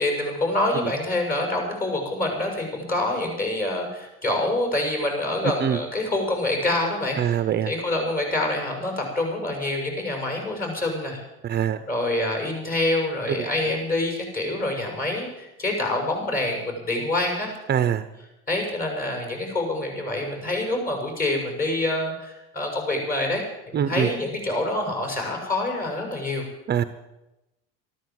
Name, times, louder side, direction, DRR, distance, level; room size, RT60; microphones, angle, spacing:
voice 1, 0.0-11.2 11.9-17.5 18.5-26.4, left 1 dB, 30° left, 2 dB, 6.8 m, -26 dB
voice 2, 7.2-7.7 11.4-11.8 13.3-13.5 17.7-18.0 23.7-24.1 26.7-26.8, right 9 dB, 35° right, 12 dB, 0.8 m, -23 dB
13.5 x 13.0 x 7.7 m, 0.96 s
supercardioid pair, 100°, 30 cm